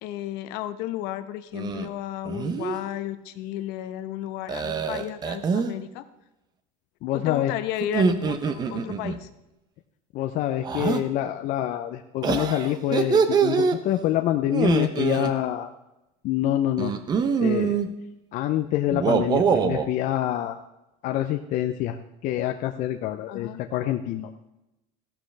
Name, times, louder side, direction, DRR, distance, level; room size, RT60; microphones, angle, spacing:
voice 1, 0.0-6.0 7.1-9.3 23.3-23.6, left 12 dB, 60° left, 11 dB, 1.0 m, -33 dB
sound 1, 1.5-1.9 2.3-2.8 4.5-5.7 7.8-9.2 10.6-11.0 12.2-13.8 14.5-15.3 16.8-17.9 18.9-19.9, right 6 dB, 25° right, 0.7 m, -24 dB
voice 2, 7.0-7.5 10.1-15.7 16.2-16.9 17.4-17.8 18.3-20.6 21.0-22.0 22.2-24.3, left 12 dB, 45° left, 5 dB, 0.6 m, -26 dB
15.5 x 11.5 x 3.4 m, 0.93 s
cardioid pair, 160°, 18 cm